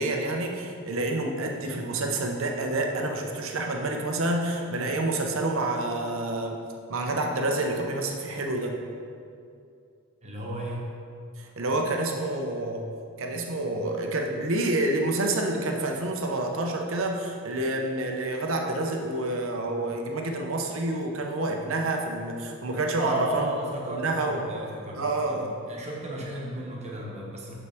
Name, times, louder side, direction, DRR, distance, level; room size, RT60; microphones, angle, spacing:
voice 1, 0.0-6.6 6.9-8.8 11.4-12.9 13.2-23.5 23.9-24.4 24.9-25.5, right 2 dB, 60° right, 2 dB, 0.7 m, -28 dB
voice 2, 10.2-11.0 23.0-27.5, right 1 dB, 30° right, -2 dB, 1.1 m, -34 dB
6.9 x 6.5 x 3.5 m, 2.4 s
head